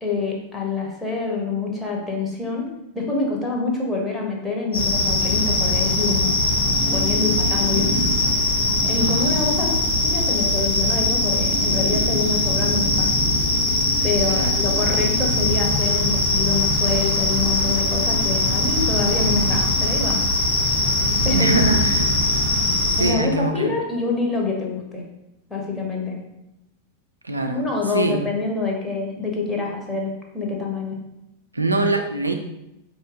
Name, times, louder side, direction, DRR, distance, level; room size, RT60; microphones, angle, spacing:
voice 1, 0.0-2.7 2.9-6.3 6.9-7.9 8.8-9.7 10.0-13.1 14.0-20.3 21.2-21.7 23.0-25.0 25.5-26.2 27.5-31.0, left 4 dB, 10° left, -2 dB, 0.9 m, -26 dB
sound 1, 4.7-23.1, left 1 dB, 75° left, 1.2 m, -21 dB
voice 2, 14.3-14.6 21.3-22.2 22.9-23.7 27.2-28.2 31.5-32.3, right 2 dB, 80° right, 4 dB, 0.3 m, -23 dB
4.3 x 2.7 x 3.8 m, 0.89 s
figure-of-eight pair, 90°, 0 cm